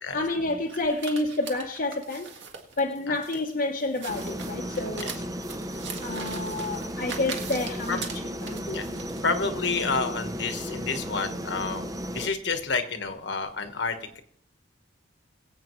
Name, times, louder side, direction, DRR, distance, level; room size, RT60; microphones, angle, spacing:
voice 1, 0.1-2.3 2.8-5.2 6.0-8.1 8.4-9.1, left 2 dB, 45° left, 0 dB, 0.9 m, -29 dB
sound 1, 0.7-9.2, right 6 dB, 65° right, 1.8 m, -40 dB
sound 2, 4.1-12.3, equal, 20° right, 0.6 m, -35 dB
voice 2, 9.2-14.2, left 4 dB, 60° left, 7 dB, 1.3 m, -29 dB
22.0 x 8.4 x 3.1 m, 0.64 s
head